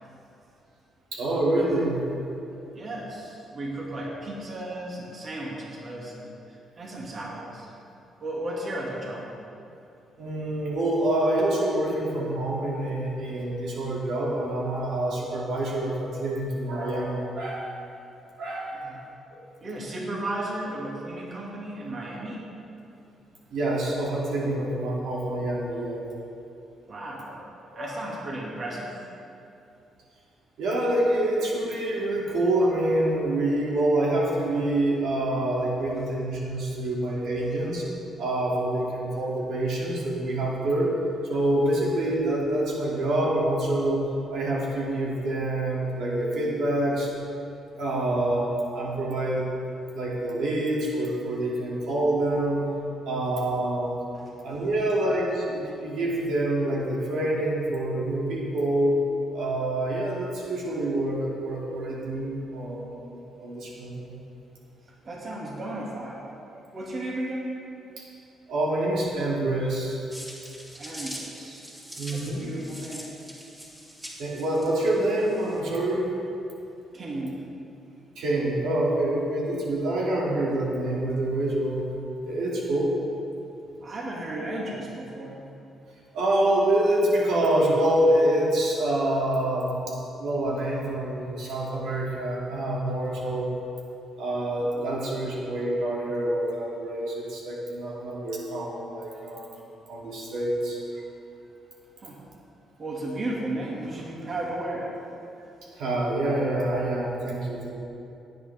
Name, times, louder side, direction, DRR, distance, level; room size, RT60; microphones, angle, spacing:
voice 1, 1.1-2.0 10.2-17.7 18.4-18.8 19.3-19.4 23.5-26.0 27.7-28.0 30.6-37.9 38.2-40.9 41.2-44.1 44.3-47.1 47.8-49.5 49.9-52.7 53.1-53.9 54.4-59.0 59.3-64.1 68.0-68.1 68.5-70.0 72.0-72.5 74.2-76.0 78.2-81.8 82.2-82.9 86.1-93.5 94.2-99.5 99.9-101.0 105.8-107.7, right 1 dB, 75° right, -4 dB, 2.7 m, -26 dB
voice 2, 2.7-7.7 8.2-9.3 18.7-19.0 19.6-22.5 26.9-27.4 27.8-29.0 54.1-54.2 65.0-67.6 70.8-71.6 72.1-73.0 76.9-77.4 83.8-85.4 94.8-95.0 102.0-102.2 102.8-104.9, right 1 dB, 45° right, -4 dB, 2.4 m, -34 dB
metallic ruffle, 70.1-75.6, equal, 15° right, 2.9 m, -43 dB
17.0 x 9.4 x 3.6 m, 2.7 s
cardioid pair, 90°, 0 cm